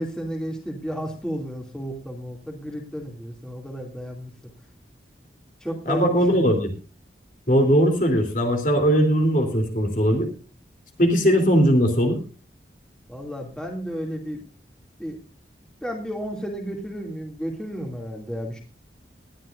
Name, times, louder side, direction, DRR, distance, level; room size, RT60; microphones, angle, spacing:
voice 1, 0.0-4.3 5.6-6.4 13.1-14.4 15.0-15.2 15.8-18.6, equal, 5° left, 0 dB, 2.6 m, -32 dB
voice 2, 5.9-6.7 7.5-10.3 11.0-12.2, equal, 45° left, 4 dB, 3.4 m, -19 dB
20.0 x 12.0 x 2.6 m, 0.33 s
head